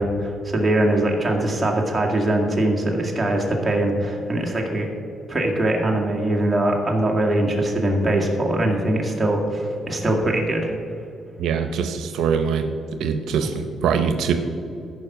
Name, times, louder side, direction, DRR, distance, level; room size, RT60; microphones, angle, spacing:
voice 1, 0.0-4.9 5.3-10.7 13.4-13.5, right 1 dB, 15° right, -1 dB, 2.1 m, -22 dB
voice 2, 11.4-12.7 13.0-14.3, right 6 dB, 80° right, 7 dB, 0.7 m, -23 dB
14.0 x 5.4 x 6.0 m, 2.6 s
cardioid pair, 90°, 0 cm